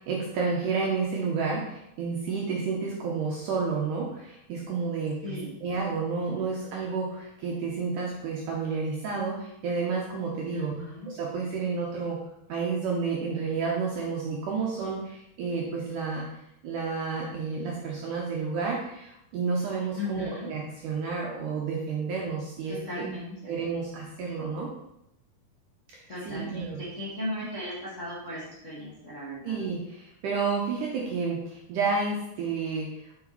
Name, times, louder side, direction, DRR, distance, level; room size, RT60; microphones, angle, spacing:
voice 1, 0.0-12.2 12.5-23.1 23.5-24.7 25.9-26.9 29.4-33.1, right 4 dB, 75° right, -2 dB, 2.0 m, -31 dB
voice 2, 5.2-5.6 10.5-11.1 20.0-20.5 22.7-23.6 26.1-29.6, left 1 dB, 40° left, -8 dB, 1.1 m, -36 dB
7.4 x 5.8 x 4.1 m, 0.81 s
omnidirectional pair, 4.7 m